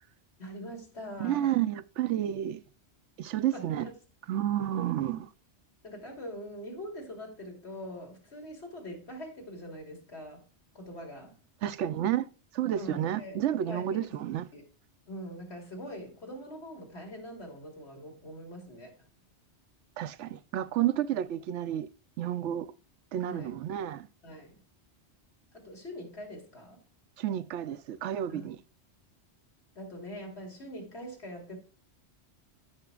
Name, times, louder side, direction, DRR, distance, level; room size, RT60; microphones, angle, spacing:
voice 1, 0.4-1.6 3.5-3.9 5.8-10.5 10.7-11.4 12.7-13.4 13.6-14.2 14.5-14.6 15.1-18.9 23.2-23.5 24.2-24.6 25.5-26.8 28.3-28.5 29.7-31.6, equal, 70° left, 3.3 m, -43 dB
voice 2, 1.2-2.6 3.2-3.9 4.3-5.3 11.6-14.5 20.0-21.9 22.2-22.7 23.1-24.1 27.2-28.6, right 11 dB, 90° right, 0.9 m, -31 dB
15.5 x 5.9 x 2.3 m
omnidirectional pair, 1.2 m